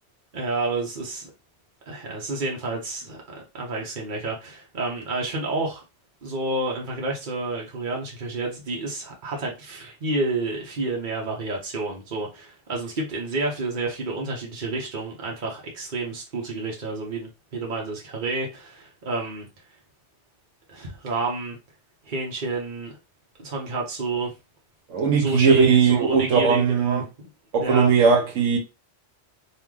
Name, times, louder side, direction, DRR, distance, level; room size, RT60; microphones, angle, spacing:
voice 1, 0.3-1.3 1.9-5.8 6.2-19.5 20.7-21.6 22.0-23.0 23.4-24.3 25.1-27.3 27.6-27.9, right 3 dB, 45° right, 1.0 m, -29 dB
voice 2, 24.9-27.0 27.5-28.6, right 6 dB, 80° right, 1.3 m, -19 dB
3.1 x 2.7 x 3.7 m
omnidirectional pair, 1.3 m